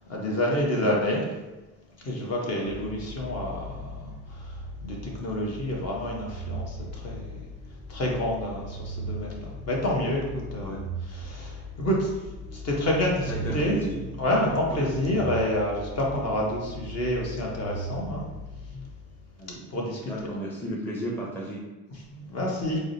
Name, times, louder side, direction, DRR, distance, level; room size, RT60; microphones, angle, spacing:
voice 1, 0.1-1.3 2.0-7.4 7.9-10.8 11.2-12.1 12.5-13.8 14.2-18.2 19.7-20.3 22.1-22.8, left 1 dB, 40° left, -2 dB, 1.0 m, -28 dB
sound 1, 2.6-19.5, equal, 75° left, 1.3 m, -39 dB
voice 2, 13.3-14.0 14.7-14.9 19.4-19.7 20.0-21.7, right 1 dB, 5° left, -5 dB, 0.6 m, -34 dB
4.7 x 2.0 x 2.6 m, 1.1 s
supercardioid pair, 95°, 37 cm